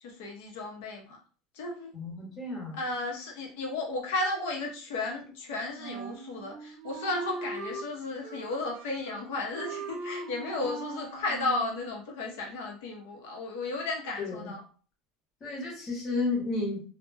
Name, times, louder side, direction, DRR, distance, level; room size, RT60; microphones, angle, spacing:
voice 1, 0.0-1.2 1.5-1.9 2.7-14.6, left 2 dB, 70° left, 0 dB, 0.6 m, -34 dB
voice 2, 1.9-2.8 14.2-14.5 15.4-16.8, left 3 dB, 20° left, -3 dB, 0.9 m, -32 dB
Wind instrument woodwind instrument, 5.8-7.9 8.2-9.3 9.5-11.7, right 3 dB, 60° right, 0.6 m, -40 dB
2.1 x 2.1 x 3.2 m, 0.40 s
cardioid pair, 180°, 0 cm